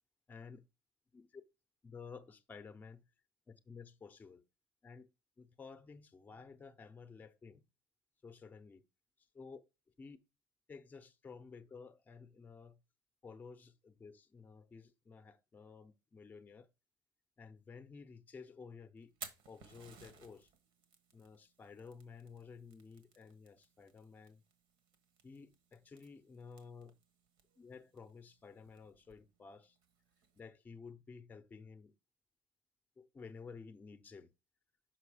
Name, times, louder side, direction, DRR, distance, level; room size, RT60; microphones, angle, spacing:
voice 1, 0.3-0.6 1.1-1.4 1.8-3.0 3.5-4.4 4.8-5.1 5.4-7.6 8.2-8.9 9.2-9.6 10.0-10.2 10.7-12.8 13.2-16.7 17.4-19.1 19.5-20.5 21.1-24.4 25.2-26.9 27.6-29.8 30.4-31.9 33.0-34.3, left 5 dB, 20° left, 0.7 m, -53 dB
Fire, 19.0-30.4, right 6 dB, 75° right, 1.4 m, -59 dB
6.0 x 5.3 x 4.9 m
cardioid pair, 135°, 9 cm